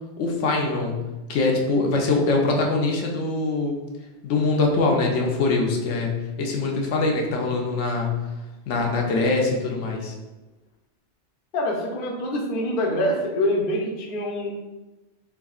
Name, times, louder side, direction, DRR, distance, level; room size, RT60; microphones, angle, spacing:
voice 1, 0.2-1.0 1.3-3.7 4.2-8.2 8.7-10.2, left 3 dB, 80° left, 0 dB, 0.9 m, -23 dB
voice 2, 11.5-14.5, left 1 dB, 55° left, 0 dB, 0.7 m, -25 dB
3.5 x 3.5 x 2.3 m, 1.1 s
omnidirectional pair, 1.2 m